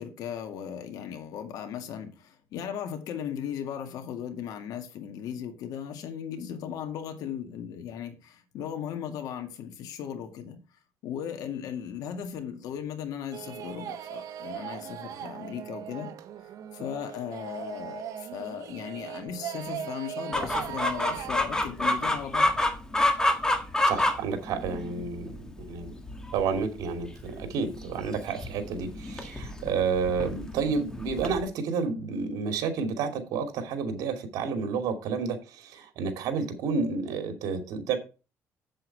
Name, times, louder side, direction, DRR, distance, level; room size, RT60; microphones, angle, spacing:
voice 1, 0.0-10.6 11.0-16.1 16.7-22.5, left 8 dB, 75° left, 2.1 m, -37 dB
sound 1, 13.3-21.3, right 10 dB, 65° right, 1.4 m, -39 dB
Chicken rooster, 20.3-31.4, left 1 dB, 10° left, 1.8 m, -29 dB
voice 2, 23.8-25.9 26.3-38.0, right 5 dB, 80° right, 2.7 m, -30 dB
8.2 x 7.7 x 4.7 m
cardioid pair, 125°, 6 cm